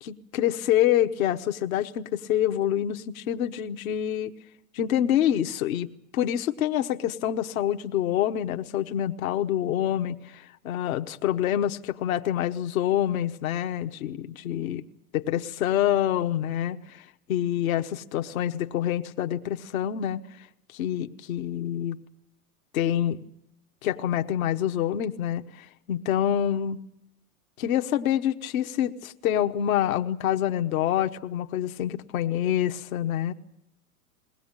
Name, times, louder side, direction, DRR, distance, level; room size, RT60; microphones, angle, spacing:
voice 1, 0.0-4.3 4.7-14.8 15.1-20.2 20.7-22.0 22.7-23.2 23.8-26.8 27.6-33.3, left 11 dB, 65° left, 8 dB, 1.2 m, -26 dB
21.5 x 18.5 x 8.9 m, 0.79 s
hypercardioid pair, 110°, 45 cm